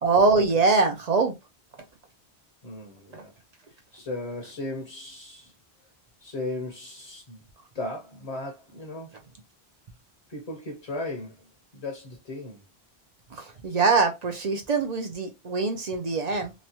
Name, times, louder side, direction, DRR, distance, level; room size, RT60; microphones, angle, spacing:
voice 1, 0.0-1.3 3.1-3.2 13.3-16.5, right 4 dB, 50° right, 0.5 m, -23 dB
voice 2, 2.6-3.3 3.9-5.5 6.2-7.4 7.7-9.2 10.3-11.4 11.7-12.6, left 2 dB, 40° left, 0.7 m, -36 dB
3.0 x 2.2 x 2.7 m
omnidirectional pair, 1.1 m